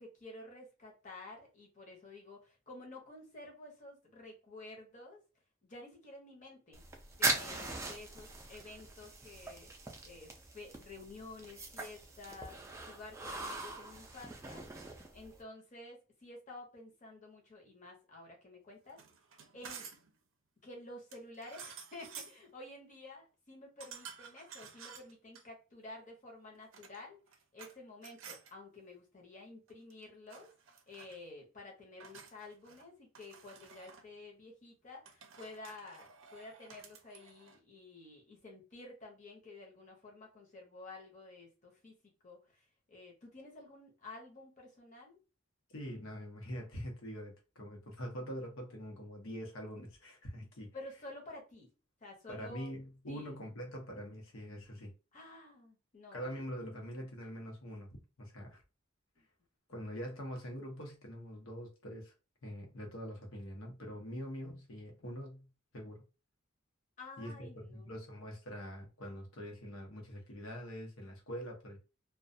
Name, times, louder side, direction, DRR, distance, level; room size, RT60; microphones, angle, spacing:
voice 1, 0.0-5.2 5.6-6.9 7.1-12.6 12.9-14.7 14.9-19.0 19.5-19.9 20.6-27.2 27.5-30.5 30.9-41.9 42.2-45.2 50.7-51.7 52.0-52.7 53.1-53.4 55.1-56.3 59.2-59.3 59.7-59.8 67.0-68.0, left 2 dB, 35° left, 0.8 m, -51 dB
sound 1, 6.7-15.4, right 2 dB, 15° right, 0.4 m, -40 dB
sound 2, 18.9-20.1 21.1-22.4 23.8-25.4 26.6-27.8 28.0-28.5 29.7-30.0 30.3-31.2 32.0-32.9 33.2-34.1 35.1-37.6, right 6 dB, 70° right, 0.5 m, -52 dB
voice 2, 45.7-50.8 52.3-54.9 56.1-58.6 59.7-62.1 62.4-66.0 67.2-71.8, equal, 80° left, 0.8 m, -44 dB
2.3 x 2.2 x 2.6 m
head